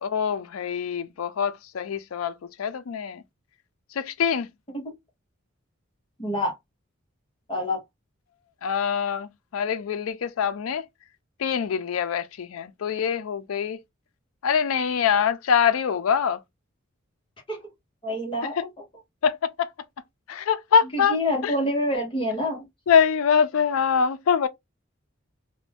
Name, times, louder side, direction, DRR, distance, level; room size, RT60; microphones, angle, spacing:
voice 1, 0.0-3.2 4.0-4.5 8.6-10.8 11.4-13.8 14.4-16.4 19.2-19.7 20.3-21.2 21.4-21.5 22.9-24.5, left 7 dB, 85° left, 0.4 m, -24 dB
voice 2, 6.2-6.5 7.5-7.8 17.5-17.7 18.0-18.7 20.9-22.6, left 1 dB, 25° left, 0.9 m, -27 dB
2.5 x 2.1 x 3.3 m
head